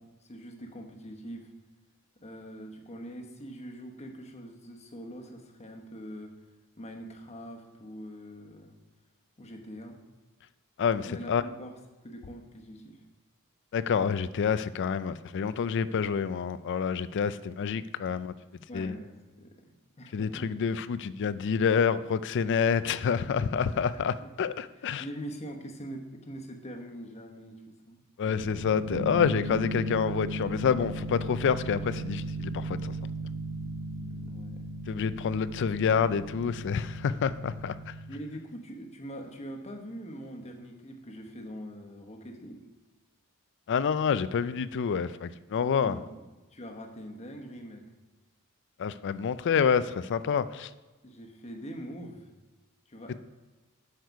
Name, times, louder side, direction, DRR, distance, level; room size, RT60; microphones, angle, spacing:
voice 1, 0.0-1.5 2.2-6.3 6.8-8.7 9.4-10.0 11.0-11.7 12.0-13.0 18.7-19.6 20.0-20.5 23.9-24.3 25.0-28.0 34.0-34.7 38.1-42.6 45.6-46.2 46.5-47.8 51.0-52.3 52.9-53.2, equal, 30° left, 2 dB, 1.1 m, -43 dB
voice 2, 10.8-11.4 13.7-18.3 18.7-18.9 20.1-25.0 28.2-32.9 34.9-37.9 43.7-46.0 48.8-50.7, left 6 dB, 55° left, 15 dB, 0.4 m, -28 dB
sound 1, 28.3-38.1, right 1 dB, 60° right, 0.9 m, -36 dB
8.0 x 6.5 x 4.7 m, 1.2 s
head